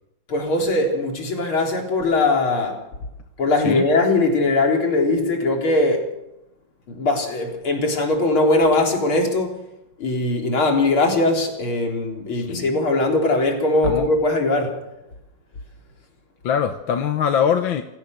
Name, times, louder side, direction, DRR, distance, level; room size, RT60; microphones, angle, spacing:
voice 1, 0.3-2.8 3.4-6.1 6.9-9.6 10.0-14.8, left 2 dB, 90° left, 2 dB, 4.6 m, -20 dB
voice 2, 12.3-12.8 13.8-14.1 16.4-17.8, left 8 dB, 75° left, 7 dB, 1.8 m, -22 dB
28.0 x 17.0 x 6.6 m, 0.90 s
omnidirectional pair, 2.2 m